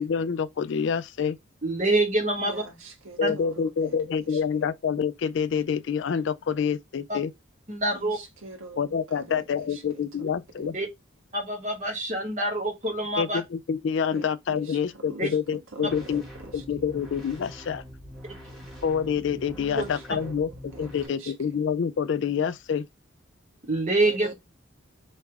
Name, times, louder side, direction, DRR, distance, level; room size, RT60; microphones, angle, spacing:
voice 1, 0.0-1.4 3.2-7.3 8.8-10.8 13.2-16.2 16.5-17.8 18.8-22.9, left 7 dB, 60° left, 0.3 m, -27 dB
voice 2, 1.6-2.6 3.2-3.3 7.1-7.2 7.7-8.2 10.7-10.9 11.3-13.4 15.2-15.3 19.8-19.9 23.6-24.3, right 2 dB, 35° right, 1.2 m, -26 dB
voice 3, 2.4-4.4 7.9-10.8 14.1-16.9 19.6-21.3 24.0-24.3, right 2 dB, 80° right, 1.5 m, -45 dB
sound 1, 15.8-21.1, equal, ahead, 1.6 m, -44 dB
3.5 x 3.1 x 4.5 m
head